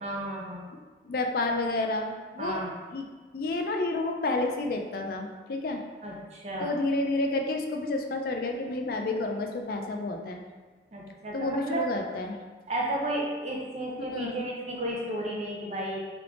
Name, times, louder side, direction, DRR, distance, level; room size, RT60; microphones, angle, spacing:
voice 1, 0.0-0.7 2.4-2.8 6.0-6.7 10.9-11.9 12.7-16.1, right 1 dB, 35° right, -2 dB, 0.6 m, -33 dB
voice 2, 1.0-2.6 2.9-3.1 3.3-5.8 6.6-10.4 11.3-12.4 14.0-14.4, left 2 dB, 50° left, 3 dB, 0.4 m, -30 dB
3.3 x 3.3 x 3.7 m, 1.4 s
head